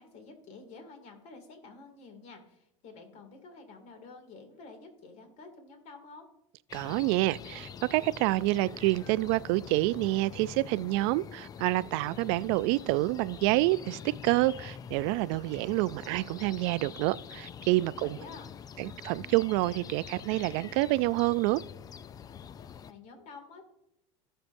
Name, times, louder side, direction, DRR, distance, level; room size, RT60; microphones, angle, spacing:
voice 1, 0.0-6.2 18.0-18.5 22.8-23.7, left 4 dB, 50° left, 2.5 m, -49 dB
sound 1, 6.7-22.9, left 7 dB, 25° left, 0.3 m, -45 dB
voice 2, 6.7-18.1 18.8-21.6, right 19 dB, 65° right, 0.4 m, -28 dB
18.0 x 6.6 x 2.6 m
supercardioid pair, 120°, 16 cm